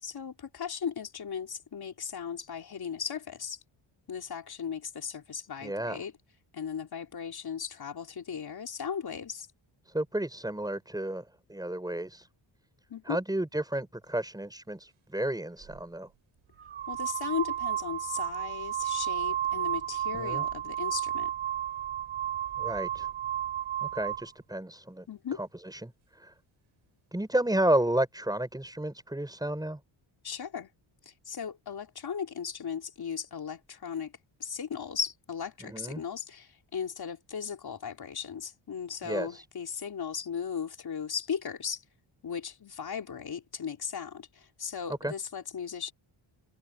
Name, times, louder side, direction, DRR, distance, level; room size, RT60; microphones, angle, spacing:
voice 1, 0.0-3.6 4.1-6.1 6.5-9.5 12.9-13.2 16.9-21.3 25.1-25.4 30.2-30.7 31.0-34.1 34.4-41.8 42.2-45.9, left 7 dB, 50° left, 3.8 m, -37 dB
voice 2, 5.6-6.0 9.8-12.3 13.1-16.1 20.1-20.4 22.6-23.1 23.8-25.1 25.7-26.3 27.1-29.8 35.7-36.0 39.0-39.5 45.0-45.1, right 1 dB, 10° right, 7.2 m, -32 dB
sound 1, 15.6-15.8 16.6-24.3, right 11 dB, 85° right, 6.1 m, -32 dB
cardioid pair, 115°, 48 cm